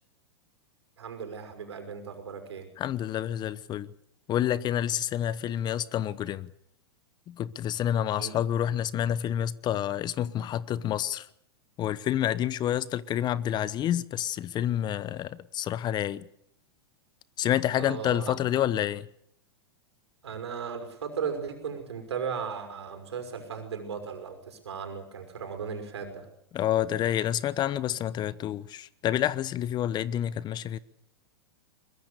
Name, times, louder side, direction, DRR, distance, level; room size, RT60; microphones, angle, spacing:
voice 1, 1.0-2.7 8.2-8.3 17.7-18.3 20.2-26.3, right 6 dB, 80° right, 5.9 m, -36 dB
voice 2, 2.8-3.9 4.3-6.5 7.3-11.3 11.8-16.2 17.4-19.1 26.5-30.8, left 11 dB, 30° left, 0.9 m, -28 dB
22.5 x 21.5 x 6.8 m
hypercardioid pair, 110°, 14 cm